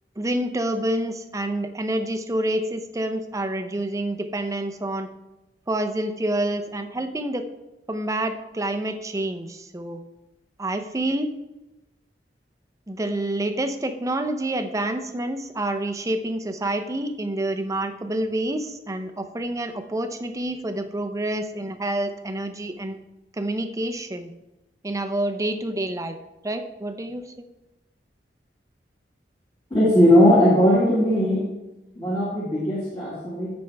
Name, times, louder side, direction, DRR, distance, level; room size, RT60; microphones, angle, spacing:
voice 1, 0.2-5.1 5.7-7.4 7.9-10.0 10.6-11.3 12.9-23.0 23.3-24.3 24.8-26.2 26.4-27.5, right 1 dB, 20° right, 7 dB, 0.6 m, -28 dB
voice 2, 29.7-31.4 32.0-33.5, equal, 30° left, -7 dB, 1.9 m, -18 dB
14.0 x 5.3 x 3.4 m, 0.99 s
head